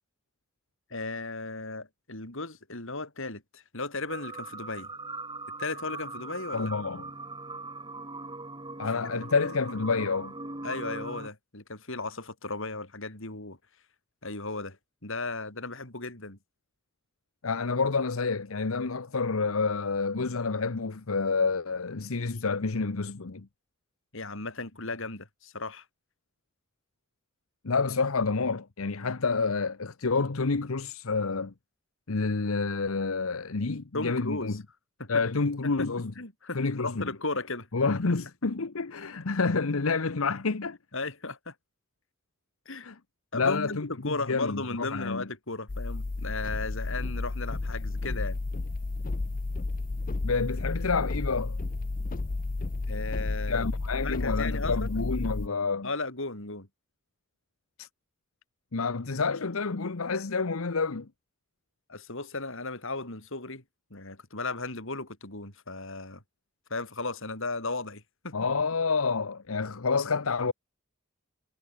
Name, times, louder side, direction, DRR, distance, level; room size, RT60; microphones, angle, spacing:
voice 1, 0.9-4.9 5.6-6.7 8.8-8.9 10.6-13.6 14.2-14.8 15.0-16.4 24.1-25.8 33.9-34.6 35.0-35.2 35.6-35.9 36.2-37.7 40.9-41.5 42.7-42.9 43.3-48.4 52.9-53.7 53.9-54.9 55.8-56.7 61.9-63.6 63.9-66.2 66.7-68.4, left 3 dB, 70° left, 6.1 m, -35 dB
sound 1, 4.1-11.3, right 3 dB, 20° right, 7.2 m, -40 dB
voice 2, 6.5-7.1 8.8-10.3 17.4-23.5 27.6-31.5 32.1-34.6 35.1-36.1 36.5-37.1 37.7-40.8 42.8-42.9 43.3-45.3 50.2-51.6 53.5-55.9 57.8-57.9 58.7-61.1 68.3-70.5, left 4 dB, 85° left, 1.0 m, -28 dB
sound 2, 45.7-55.5, left 3 dB, 40° left, 0.6 m, -32 dB
head